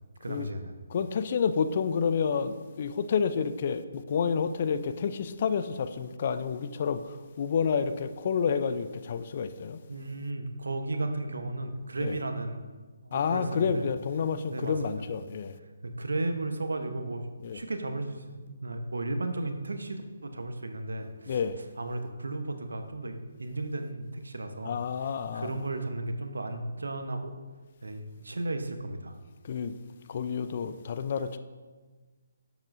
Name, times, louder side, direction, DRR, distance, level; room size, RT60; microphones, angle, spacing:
voice 1, 0.2-0.7 9.9-12.7 13.0-13.9 14.5-15.1 15.8-21.4 21.8-27.3 27.8-29.2, right 2 dB, 70° right, 0.9 m, -34 dB
voice 2, 0.9-9.8 12.0-12.1 13.1-15.5 17.4-17.6 21.3-21.6 24.7-25.5 29.4-29.7 30.1-31.4, left 6 dB, 45° left, 0.5 m, -29 dB
11.5 x 7.2 x 2.6 m
figure-of-eight pair, 140°, 0 cm